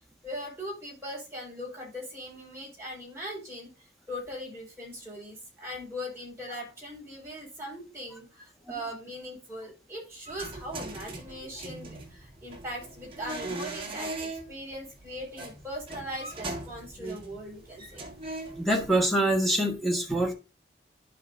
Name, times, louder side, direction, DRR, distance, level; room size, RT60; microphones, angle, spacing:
voice 1, 0.2-18.1, equal, 15° right, 4.6 m, -40 dB
sound 1, 10.3-19.1, right 2 dB, 30° right, 1.8 m, -40 dB
voice 2, 18.6-20.3, right 1 dB, ahead, 1.5 m, -25 dB
12.0 x 5.2 x 2.6 m
head